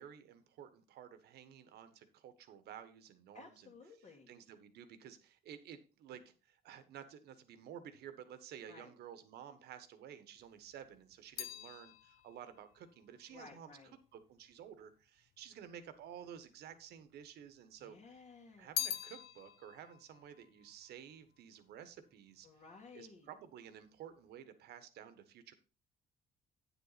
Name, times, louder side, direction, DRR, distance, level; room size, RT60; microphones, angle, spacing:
voice 1, 0.0-3.7 4.1-13.7 14.1-18.1 18.6-22.5 22.9-25.5, right 9 dB, 70° right, 11 dB, 1.3 m, -53 dB
voice 2, 3.3-4.3 8.7-8.9 13.3-14.0 17.8-18.7 22.4-23.3, left 4 dB, 45° left, -2 dB, 2.0 m, -56 dB
sound 1, 10.4-14.8 15.6-16.4 16.7-17.8 18.2-21.7 22.0-22.5, left 12 dB, 65° left, 0.6 m, -45 dB
9.1 x 7.2 x 4.1 m, 0.34 s
cardioid pair, 110°, 17 cm